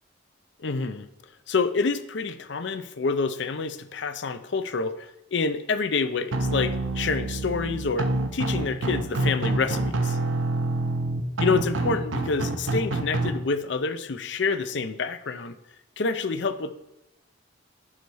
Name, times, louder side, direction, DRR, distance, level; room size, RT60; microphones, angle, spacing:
voice 1, 0.6-1.1 1.5-10.2 11.4-15.6 16.0-16.7, left 4 dB, 65° left, 11 dB, 0.5 m, -27 dB
sound 1, 6.3-13.3, right 2 dB, 80° right, 0.8 m, -27 dB
11.0 x 4.7 x 4.1 m, 0.87 s
head